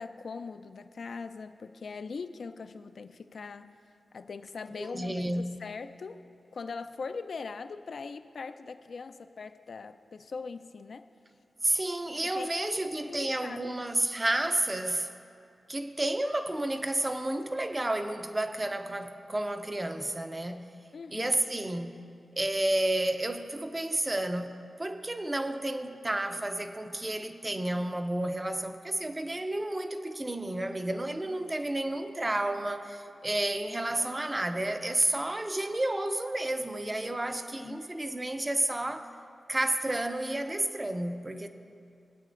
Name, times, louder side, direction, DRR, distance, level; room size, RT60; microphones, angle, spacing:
voice 1, 0.0-3.7 4.1-6.2 6.5-11.1 12.2-13.8 20.9-21.5 37.6-37.8, left 4 dB, 65° left, 0.4 m, -41 dB
voice 2, 4.8-5.6 11.6-15.1 15.7-20.7 21.1-22.0 22.4-39.1 39.5-41.5, right 1 dB, 20° right, 0.6 m, -31 dB
22.0 x 8.4 x 2.5 m
wide cardioid pair, 100°, 0 cm